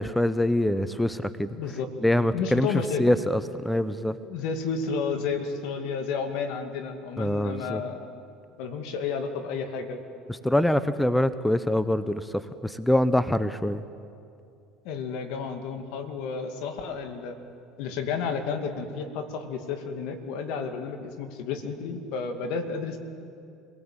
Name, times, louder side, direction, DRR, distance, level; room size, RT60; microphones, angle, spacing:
voice 1, 0.0-1.6 2.0-2.7 3.0-4.2 7.2-7.8 10.3-13.8, left 1 dB, 5° left, 13 dB, 0.8 m, -24 dB
voice 2, 1.6-1.9 2.3-3.2 4.2-8.1 8.6-10.0 14.8-17.4 17.8-23.0, left 5 dB, 70° left, 6 dB, 2.5 m, -31 dB
26.0 x 18.0 x 8.9 m, 2.5 s
supercardioid pair, 85°, 0 cm